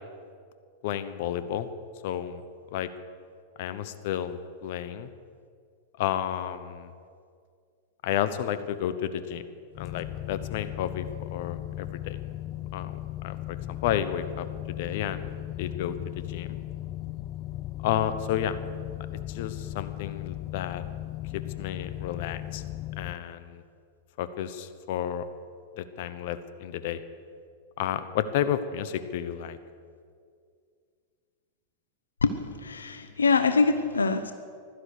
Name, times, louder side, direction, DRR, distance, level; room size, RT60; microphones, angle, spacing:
voice 1, 0.8-1.7 2.0-2.4 2.7-2.9 3.6-5.1 6.0-6.9 8.0-9.4 9.8-12.2 12.7-15.3 15.6-16.6 17.8-18.6 19.3-20.8 21.3-22.6 23.0-23.6 24.2-25.2 25.8-27.0 27.8-29.6, left 10 dB, 60° left, 13 dB, 0.9 m, -31 dB
sound 1, 9.7-23.1, left 15 dB, 40° left, 0.5 m, -37 dB
voice 2, 32.6-34.3, left 4 dB, 90° left, 9 dB, 0.7 m, -24 dB
16.0 x 12.5 x 6.7 m, 2.2 s
hypercardioid pair, 100°, 0 cm